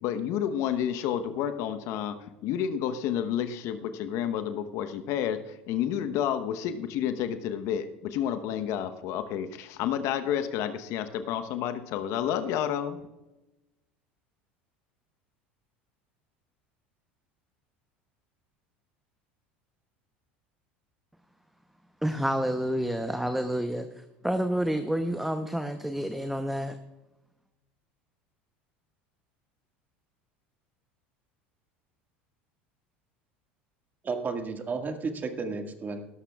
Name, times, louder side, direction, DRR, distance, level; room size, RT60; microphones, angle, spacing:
voice 1, 0.0-13.0, left 9 dB, 60° left, 9 dB, 1.0 m, -30 dB
voice 2, 22.0-23.9 24.2-26.8, equal, 5° right, 8 dB, 0.8 m, -29 dB
voice 3, 34.0-36.0, right 4 dB, 30° right, 5 dB, 1.8 m, -32 dB
18.0 x 13.0 x 2.4 m, 1.0 s
hypercardioid pair, 75°, 6 cm